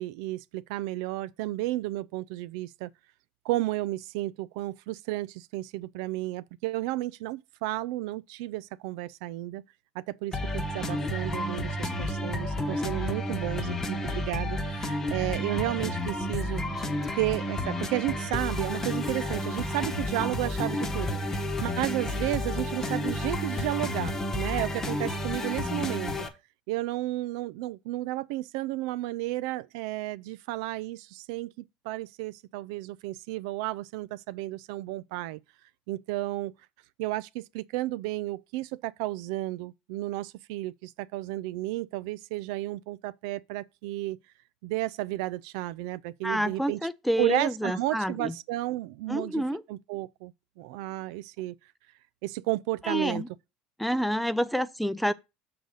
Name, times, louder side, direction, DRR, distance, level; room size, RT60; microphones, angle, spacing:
voice 1, 0.0-2.9 3.4-9.6 9.9-16.6 17.2-26.1 26.7-31.5 31.8-35.4 35.9-36.5 37.0-44.2 44.6-46.8 47.2-49.4 49.7-51.5 52.2-53.2, right 17 dB, 80° right, 0.4 m, -32 dB
sound 1, 10.3-26.3, left 1 dB, 20° left, 1.0 m, -31 dB
Female speech woman speaking, 15.6-17.5 18.5-19.9 20.4-21.4, right 2 dB, 15° right, 0.9 m, -47 dB
voice 2, 46.2-48.3 49.1-49.6 52.8-53.3 53.8-55.1, equal, ahead, 0.4 m, -28 dB
6.7 x 4.0 x 6.3 m
cardioid pair, 135°, 2 cm